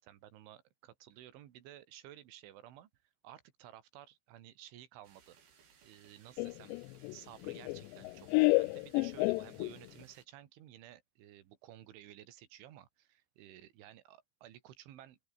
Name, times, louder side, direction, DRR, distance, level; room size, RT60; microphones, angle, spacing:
voice 1, 0.0-5.4 5.8-6.7 7.1-15.2, right 12 dB, 80° right, 4.5 m, -54 dB
sound 1, 5.0-10.3, right 7 dB, 55° right, 5.8 m, -64 dB
Laughter, 6.4-10.0, left 24 dB, 85° left, 2.5 m, -31 dB
open air
omnidirectional pair, 5.4 m